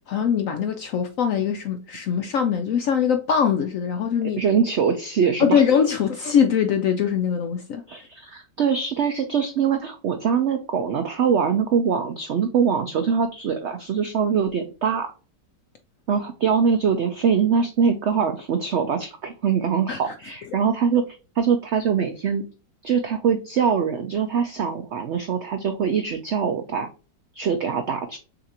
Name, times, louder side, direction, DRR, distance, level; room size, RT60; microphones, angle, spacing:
voice 1, 0.1-4.4 5.4-7.8 19.9-20.1, left 7 dB, 75° left, 0.7 m, -22 dB
voice 2, 4.4-5.6 7.9-15.1 16.1-21.0 21.4-22.4 22.8-26.9 27.3-28.2, right 6 dB, 75° right, 0.6 m, -23 dB
6.5 x 2.6 x 2.8 m
omnidirectional pair, 1.9 m